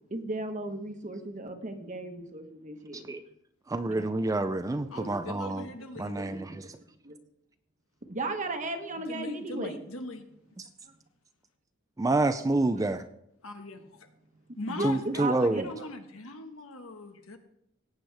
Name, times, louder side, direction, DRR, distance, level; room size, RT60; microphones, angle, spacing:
voice 1, 0.1-3.0 3.9-4.1 4.9-5.3 6.1-7.2 8.1-9.8 10.9-11.0 14.7-15.7, right 2 dB, 35° right, 6 dB, 1.2 m, -36 dB
voice 2, 3.7-5.7 6.0-6.7 12.0-13.0 14.8-15.7, right 2 dB, 15° right, 9 dB, 0.4 m, -28 dB
voice 3, 4.9-6.3 9.1-10.2 13.4-14.1 14.5-17.4, left 2 dB, 75° left, 6 dB, 1.3 m, -41 dB
18.0 x 8.0 x 3.4 m, 0.77 s
head